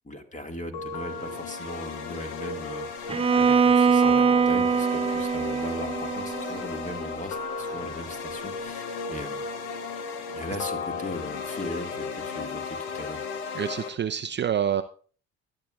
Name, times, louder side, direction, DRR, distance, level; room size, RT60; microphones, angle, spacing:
voice 1, 0.0-9.4 10.3-13.3, left 1 dB, 20° left, 5 dB, 1.9 m, -38 dB
sound 1, 0.7-13.9, left 5 dB, 80° left, 1.1 m, -35 dB
Bowed string instrument, 3.1-7.1, right 5 dB, 15° right, 1.0 m, -23 dB
voice 2, 13.5-14.8, right 9 dB, 30° right, 9 dB, 0.6 m, -27 dB
22.0 x 7.8 x 2.4 m, 0.41 s
hypercardioid pair, 55°, 35 cm